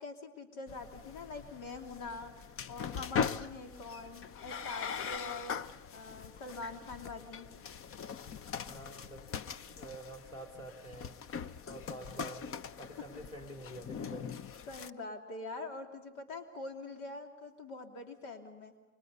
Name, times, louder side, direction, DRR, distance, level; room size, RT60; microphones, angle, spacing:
voice 1, 0.0-2.3 2.7-5.6 5.9-7.5 14.7-18.7, left 3 dB, 70° left, 4 dB, 3.2 m, -44 dB
sound 1, 0.7-14.9, left 7 dB, 30° left, 0.7 m, -41 dB
voice 2, 8.6-9.3 9.7-11.2 11.6-12.5 12.8-14.4, right 2 dB, 10° left, 3 dB, 3.1 m, -48 dB
30.0 x 25.0 x 5.5 m, 1.1 s
hypercardioid pair, 95°, 44 cm